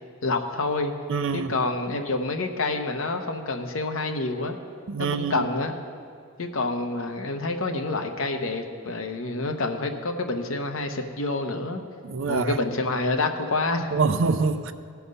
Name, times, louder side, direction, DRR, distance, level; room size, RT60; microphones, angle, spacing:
voice 1, 0.2-0.9 1.3-4.6 5.0-5.7 6.4-11.8 12.3-13.9, left 2 dB, 70° left, 5 dB, 0.9 m, -27 dB
voice 2, 1.1-1.5 4.9-5.5 12.0-12.6 13.9-14.7, right 4 dB, 65° right, 11 dB, 0.5 m, -25 dB
17.5 x 5.8 x 5.4 m, 2.2 s
head